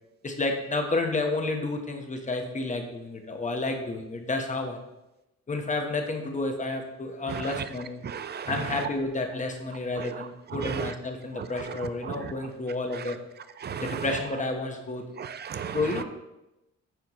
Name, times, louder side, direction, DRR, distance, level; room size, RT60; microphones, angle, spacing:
voice 1, 0.2-4.8 5.5-8.0 8.5-13.2 13.8-15.0 15.7-16.0, left 2 dB, 25° left, 3 dB, 1.0 m, -30 dB
voice 2, 7.3-7.6 8.0-8.9 10.0-10.2 10.5-10.9 11.4-12.3 13.6-14.0 15.2-16.0, right 7 dB, 35° right, 12 dB, 0.5 m, -35 dB
9.2 x 4.6 x 3.0 m, 0.96 s
cardioid pair, 90°, 30 cm